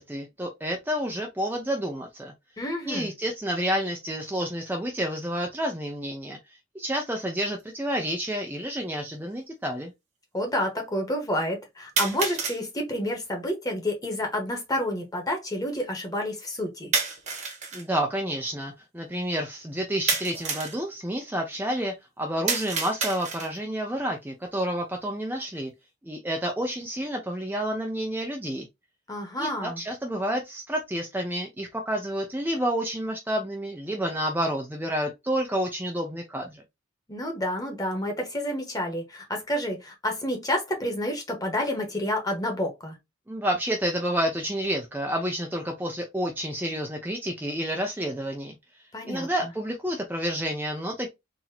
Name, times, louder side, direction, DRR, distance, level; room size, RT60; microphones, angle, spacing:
voice 1, 0.0-2.3 2.9-9.9 17.7-25.7 26.0-28.7 29.4-36.6 43.3-48.5 49.1-51.1, equal, 10° right, 0.6 m, -29 dB
voice 2, 2.6-3.1 10.3-16.9 29.1-29.8 37.1-43.0 48.9-49.3, left 1 dB, 20° left, 1.4 m, -29 dB
sound 1, 7.6-7.7 8.7-8.8 12.0-12.6 16.9-17.8 20.1-20.8 22.5-23.6, right 4 dB, 40° right, 1.2 m, -29 dB
4.0 x 2.9 x 2.8 m
head